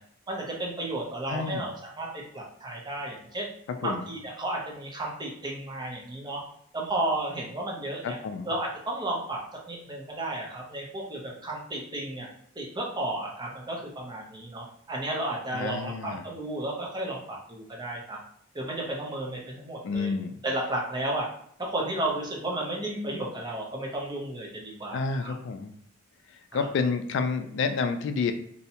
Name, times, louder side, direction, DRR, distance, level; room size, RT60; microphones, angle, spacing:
voice 1, 0.3-3.5 3.8-6.4 6.7-8.2 8.5-9.4 9.7-12.3 12.6-18.2 18.5-20.1 20.4-21.3 21.6-25.3 26.5-26.7, right 1 dB, 20° right, -1 dB, 0.6 m, -33 dB
voice 2, 1.3-1.7 3.8-4.1 8.0-8.5 15.5-16.3 19.8-20.4 24.9-25.7 26.3-28.3, left 4 dB, 65° left, 8 dB, 0.3 m, -29 dB
2.6 x 2.1 x 2.8 m, 0.66 s
head